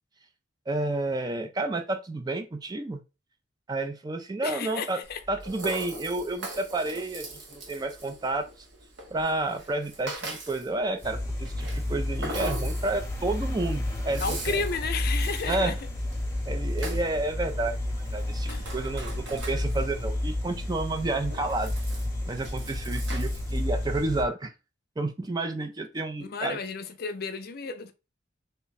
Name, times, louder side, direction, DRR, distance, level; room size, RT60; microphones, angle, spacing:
voice 1, 0.7-3.0 3.7-5.0 5.3-8.5 9.1-14.6 15.5-15.7 16.5-21.7 22.3-24.5 25.0-26.6, right 2 dB, 20° right, 0.3 m, -30 dB
voice 2, 4.4-5.2 14.2-15.8 18.5-18.7 26.2-27.9, left 5 dB, 55° left, 0.4 m, -32 dB
Rattle (instrument), 5.0-24.0, right 1 dB, 70° right, 0.9 m, -42 dB
sound 1, 11.0-24.2, left 1 dB, 15° left, 0.9 m, -31 dB
3.3 x 2.1 x 3.9 m
head